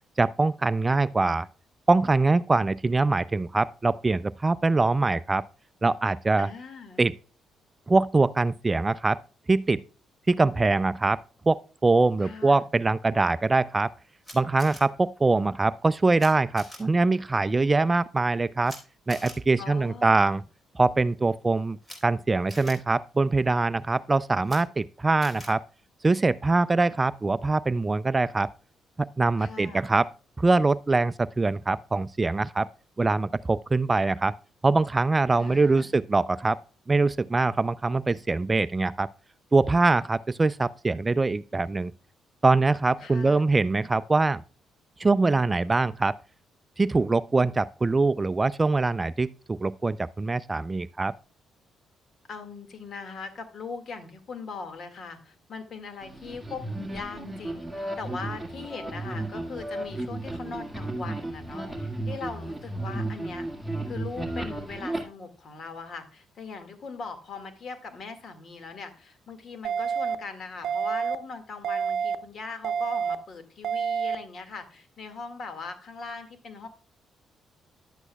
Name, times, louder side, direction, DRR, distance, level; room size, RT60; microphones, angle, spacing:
voice 1, 0.2-1.5 1.9-5.4 5.8-6.5 7.0-7.1 7.9-9.2 9.5-9.8 10.3-11.2 11.5-13.9 14.3-18.8 19.1-20.4 20.8-21.8 22.0-25.6 26.0-28.5 29.0-30.1 30.4-32.7 33.0-34.3 34.6-36.6 36.9-39.1 39.5-41.9 42.4-44.4 45.0-46.2 46.8-51.1, right 3 dB, 25° right, 0.3 m, -23 dB
voice 2, 6.4-7.0 12.2-12.6 19.6-20.4 29.4-29.9 35.4-35.9 43.0-43.5 52.3-63.5 63.9-76.7, left 4 dB, 55° left, 1.9 m, -40 dB
Camera, 14.2-14.8 16.2-16.3 16.6-16.8 18.6-18.8 19.1-19.3 21.8-22.0 22.5-22.7 24.4-24.6 25.2-25.5, equal, 20° left, 3.5 m, -43 dB
sound 1, 56.0-65.0, right 2 dB, ahead, 1.8 m, -34 dB
sound 2, 69.6-70.1 70.6-71.1 71.6-72.1 72.6-73.1 73.6-74.1, right 7 dB, 70° right, 0.7 m, -27 dB
11.0 x 8.2 x 2.3 m
cardioid pair, 90°, 0 cm